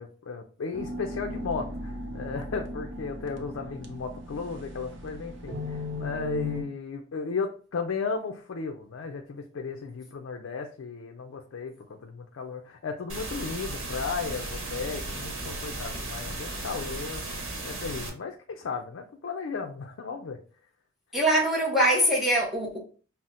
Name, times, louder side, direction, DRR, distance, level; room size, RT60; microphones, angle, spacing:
voice 1, 0.0-17.2 17.6-20.4, left 4 dB, 75° left, 0.4 m, -35 dB
sound 1, 0.7-6.6, left 2 dB, 65° right, 0.7 m, -37 dB
sound 2, 13.1-18.1, right 2 dB, 80° right, 1.0 m, -35 dB
voice 2, 21.1-22.8, right 1 dB, ahead, 0.7 m, -23 dB
5.6 x 2.0 x 2.5 m
head